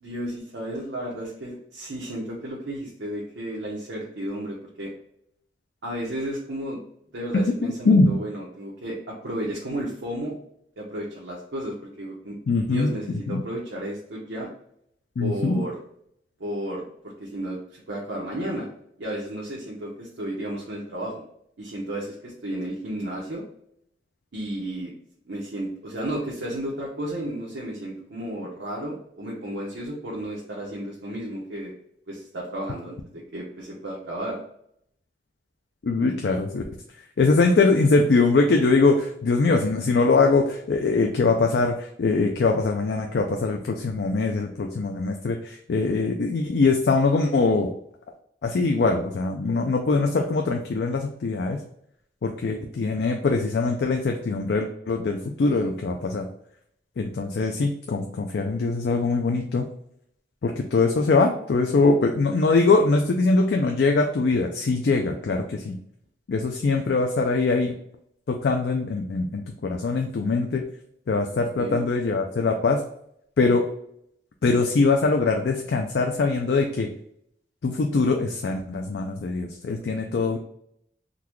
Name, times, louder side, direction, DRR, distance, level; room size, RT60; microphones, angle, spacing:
voice 1, 0.0-4.9 5.8-6.8 7.1-10.4 10.8-12.4 12.7-14.5 15.2-15.8 16.4-18.7 19.0-21.2 21.6-23.4 24.3-24.9 25.3-31.7 32.1-34.4 71.6-71.9, right 1 dB, 85° right, -4 dB, 0.9 m, -33 dB
voice 2, 7.3-8.2 12.5-12.9 13.3-13.4 15.2-15.6 35.8-36.6 37.2-47.7 48.4-51.6 52.2-56.3 57.0-59.7 60.4-65.8 66.3-67.7 68.3-70.6 71.1-72.8 73.4-73.7 74.4-76.9 77.6-80.4, left 3 dB, 65° left, 3 dB, 0.4 m, -22 dB
3.9 x 2.2 x 3.0 m, 0.71 s
head